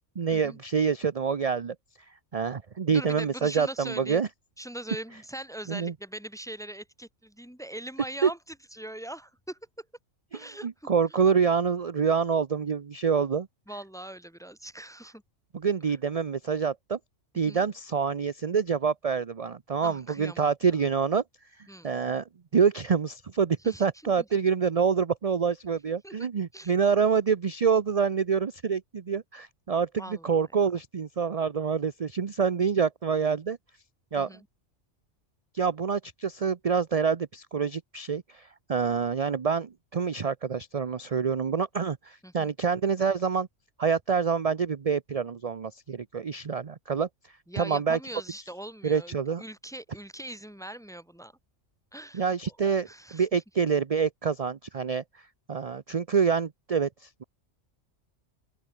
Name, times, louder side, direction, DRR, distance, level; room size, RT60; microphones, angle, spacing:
voice 1, 0.2-1.7 2.3-4.3 5.7-5.9 8.2-8.3 10.6-13.5 15.5-17.0 17.3-21.2 21.8-22.2 22.5-33.6 34.1-34.3 35.5-43.5 43.8-47.1 47.6-48.0 48.8-49.4 52.1-55.0 55.5-57.2, right 6 dB, 35° right, 0.7 m, -26 dB
voice 2, 2.9-4.3 4.6-8.4 8.7-9.9 10.3-10.9 13.7-15.2 15.9-16.0 17.5-17.6 19.8-20.5 21.7-21.9 23.6-24.3 26.0-26.7 30.0-30.5 34.2-34.5 42.2-42.5 47.5-51.3 51.9-52.6 52.8-53.4, right 1 dB, 5° left, 1.2 m, -41 dB
open air
omnidirectional pair, 1.3 m